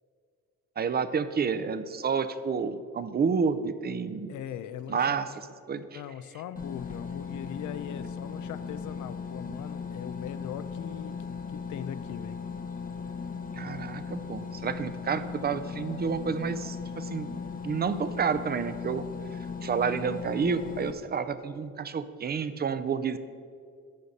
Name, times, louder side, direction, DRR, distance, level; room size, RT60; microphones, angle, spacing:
voice 1, 0.8-4.3 4.9-5.3 5.7-6.0 13.5-17.3 17.6-19.0 19.6-23.2, right 6 dB, 30° right, 12 dB, 0.5 m, -29 dB
voice 2, 4.3-5.2 5.8-12.4, left 10 dB, 75° left, 13 dB, 0.5 m, -40 dB
sound 1, 6.6-20.9, left 5 dB, 30° left, 0.8 m, -38 dB
12.5 x 5.1 x 4.1 m, 2.3 s
cardioid pair, 90°, 30 cm